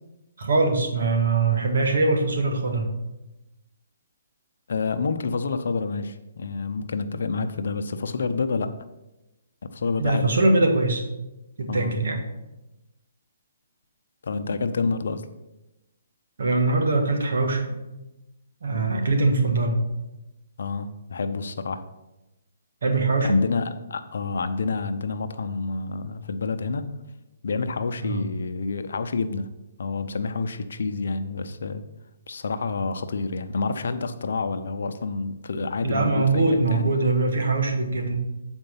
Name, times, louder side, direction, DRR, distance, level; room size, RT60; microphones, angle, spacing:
voice 1, 0.4-2.9 10.0-11.0 11.6-12.2 16.4-17.8 18.6-19.7 22.8-23.4 28.0-28.2 35.8-38.1, right 3 dB, 70° right, 3 dB, 1.6 m, -22 dB
voice 2, 4.7-8.7 9.7-10.3 11.7-12.0 14.2-15.3 20.6-21.8 23.2-26.9 27.4-29.5 29.8-31.8 32.3-36.9, left 4 dB, 70° left, 9 dB, 0.6 m, -28 dB
7.8 x 4.4 x 5.7 m, 0.98 s
hypercardioid pair, 150°, 0 cm